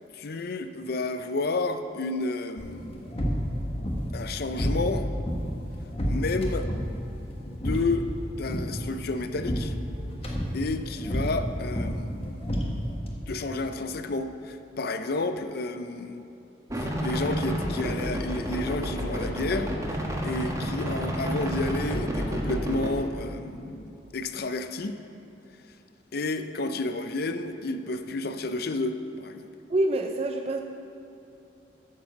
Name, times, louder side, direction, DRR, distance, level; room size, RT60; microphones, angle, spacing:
voice 1, 0.1-3.1 4.1-5.1 6.0-6.7 7.4-8.1 8.4-9.8 10.3-12.4 13.3-16.2 16.8-25.0 26.1-29.5, left 2 dB, 60° left, 9 dB, 0.5 m, -31 dB
sound 1, 2.6-13.1, equal, 35° left, 1.3 m, -31 dB
sound 2, 16.7-22.9, equal, 20° right, 1.3 m, -30 dB
voice 2, 29.7-30.6, right 2 dB, 35° right, 4 dB, 0.4 m, -26 dB
9.7 x 7.2 x 6.7 m, 2.8 s
head